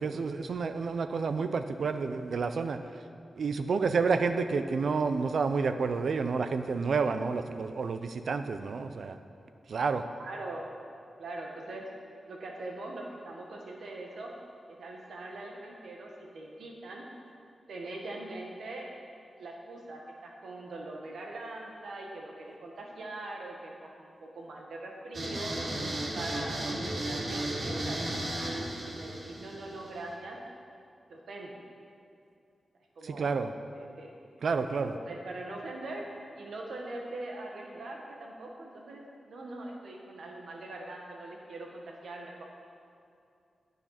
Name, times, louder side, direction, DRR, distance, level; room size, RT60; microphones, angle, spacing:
voice 1, 0.0-2.8 3.4-9.2 9.7-10.0 33.0-33.5 34.4-35.0, right 4 dB, 75° right, 9 dB, 0.5 m, -29 dB
voice 2, 10.2-10.6 11.2-11.9 12.3-14.3 14.7-17.0 17.7-18.9 19.4-25.5 26.1-30.4 31.1-31.5 33.0-33.3 33.8-34.1 34.6-36.1 36.3-42.4, right 2 dB, 90° right, 0 dB, 1.6 m, -42 dB
sound 1, 25.1-30.1, right 1 dB, 45° right, 1.5 m, -34 dB
11.0 x 6.7 x 5.8 m, 2.5 s
wide cardioid pair, 105°, 0 cm